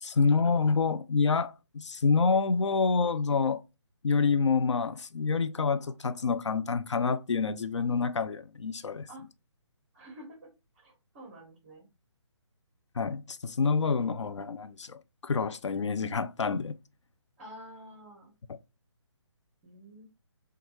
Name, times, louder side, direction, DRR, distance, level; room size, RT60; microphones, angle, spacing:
voice 1, 0.0-3.6 4.0-9.1 13.0-16.8, left 4 dB, 75° left, 0.5 m, -27 dB
voice 2, 9.9-10.5 10.7-11.9 17.4-18.3 19.6-20.0, equal, 25° right, 1.3 m, -49 dB
4.5 x 2.5 x 3.0 m
figure-of-eight pair, 150°, 15 cm